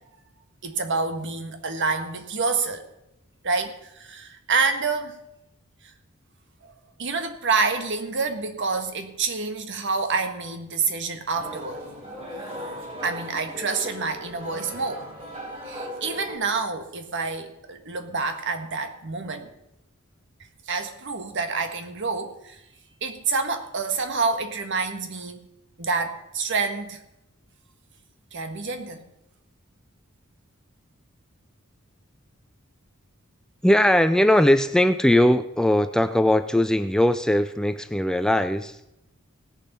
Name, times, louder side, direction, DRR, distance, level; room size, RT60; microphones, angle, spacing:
voice 1, 0.6-2.8 3.4-5.2 6.6-6.7 7.0-11.8 13.0-15.0 15.6-19.5 20.7-22.6 23.0-25.4 25.8-27.0 28.3-29.0, right 4 dB, 60° right, 7 dB, 1.5 m, -27 dB
sound 1, 11.3-16.4, equal, 30° right, 4.4 m, -37 dB
voice 2, 33.6-38.8, left 1 dB, 5° left, 11 dB, 0.4 m, -20 dB
18.0 x 7.1 x 5.4 m, 0.86 s
head